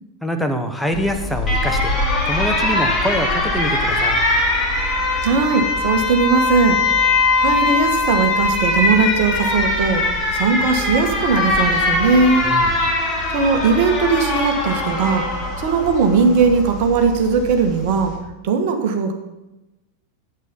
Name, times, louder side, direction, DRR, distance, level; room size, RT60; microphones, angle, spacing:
voice 1, 0.2-1.9 2.3-4.2 12.4-12.8, equal, ahead, 4 dB, 1.3 m, -24 dB
Alarm, 0.9-18.2, left 2 dB, 20° left, 3.0 m, -21 dB
voice 2, 5.2-7.1 7.4-10.0 10.3-12.5 13.0-18.1 18.4-19.1, right 4 dB, 50° right, 5 dB, 1.6 m, -19 dB
9.3 x 8.1 x 5.6 m, 1.0 s
figure-of-eight pair, 90°, 0 cm